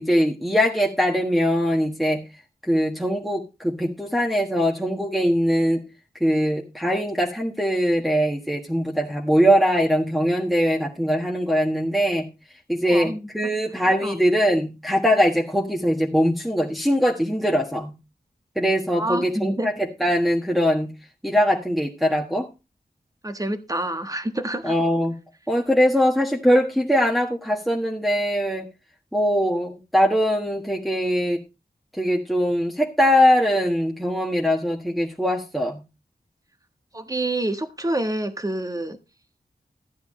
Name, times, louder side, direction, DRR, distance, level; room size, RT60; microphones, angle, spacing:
voice 1, 0.0-2.2 2.6-5.8 6.2-12.3 12.7-17.9 18.5-20.9 21.2-22.5 24.6-25.1 25.5-28.7 29.1-31.4 32.0-35.8, equal, ahead, 0 dB, 1.5 m, -21 dB
voice 2, 12.8-13.3 14.0-14.2 18.9-19.7 23.2-24.7 36.9-39.0, right 1 dB, 20° right, 8 dB, 1.3 m, -27 dB
13.0 x 9.4 x 3.2 m, 0.28 s
wide cardioid pair, 75°, 16 cm